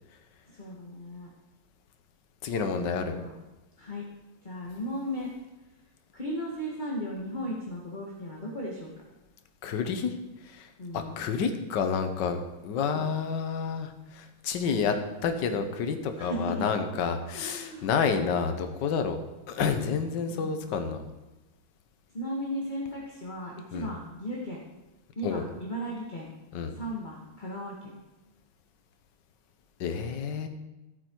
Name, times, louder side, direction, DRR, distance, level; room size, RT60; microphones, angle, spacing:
voice 1, 0.5-1.3 2.7-3.3 3.8-4.0 4.4-5.3 6.1-8.9 10.8-11.2 12.9-13.1 16.2-16.8 17.3-17.9 20.2-20.5 22.1-24.6 25.1-26.3 26.7-27.9, equal, 25° left, -4 dB, 1.6 m, -36 dB
voice 2, 2.4-3.2 9.6-10.1 10.4-10.7 10.9-15.0 15.2-19.2 19.5-21.0 23.7-23.9 25.2-25.4 26.5-26.8 29.8-30.5, left 6 dB, 60° left, 7 dB, 1.6 m, -29 dB
14.5 x 8.5 x 4.6 m, 1.0 s
omnidirectional pair, 2.3 m